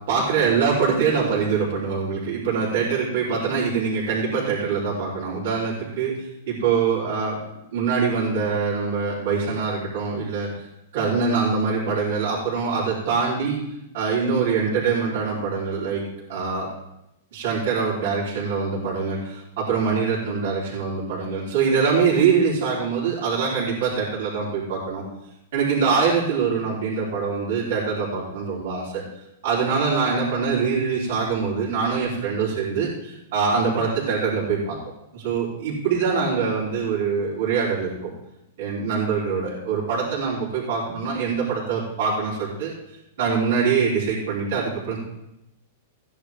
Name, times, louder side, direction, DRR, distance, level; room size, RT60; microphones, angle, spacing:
voice 1, 0.1-7.4 7.7-10.5 10.9-13.6 13.9-16.0 16.3-16.7 17.3-25.0 25.5-29.0 29.4-34.8 35.1-38.1 38.6-42.7 43.2-45.0, right 5 dB, 65° right, -8 dB, 3.6 m, -24 dB
15.5 x 10.0 x 3.5 m, 0.86 s
supercardioid pair, 160°, 0 cm